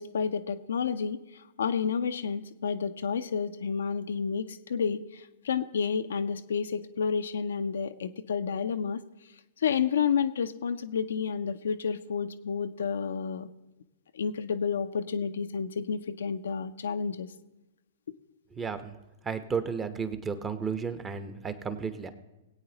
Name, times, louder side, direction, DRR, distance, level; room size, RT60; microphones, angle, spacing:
voice 1, 0.0-9.0 9.6-13.5 14.1-17.3, left 6 dB, 70° left, 9 dB, 0.5 m, -30 dB
voice 2, 18.5-19.0 19.2-22.1, right 6 dB, 20° right, 10 dB, 0.9 m, -33 dB
20.5 x 8.6 x 2.9 m, 1.0 s
hypercardioid pair, 110°, 0 cm